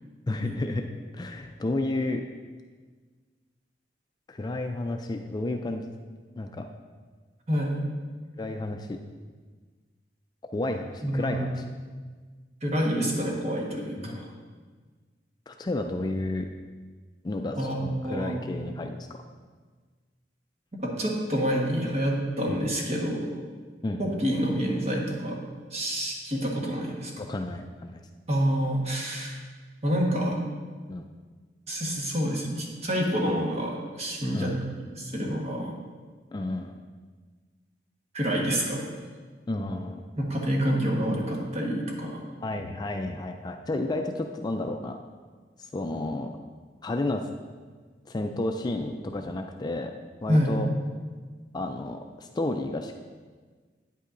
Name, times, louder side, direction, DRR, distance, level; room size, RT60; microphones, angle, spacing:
voice 1, 0.3-0.9 1.1-2.3 4.3-5.9 6.4-6.7 8.4-9.0 10.4-11.6 14.0-14.2 15.5-16.5 17.2-19.1 22.5-22.6 23.8-24.0 27.2-28.0 30.9-31.1 34.3-34.6 36.3-36.7 39.5-40.1 42.4-45.0 45.6-46.3 46.8-47.3 48.1-49.9 50.2-50.7 51.5-53.0, left 2 dB, 25° left, 5 dB, 0.3 m, -31 dB
voice 2, 7.5-7.8 11.0-11.6 12.6-14.3 17.6-18.7 20.7-23.4 24.0-25.4 25.7-27.1 28.3-29.4 29.8-30.4 31.7-35.7 38.1-39.0 40.1-42.2 50.3-50.6, equal, 40° right, -1 dB, 1.3 m, -28 dB
9.3 x 8.2 x 2.5 m, 1.5 s
head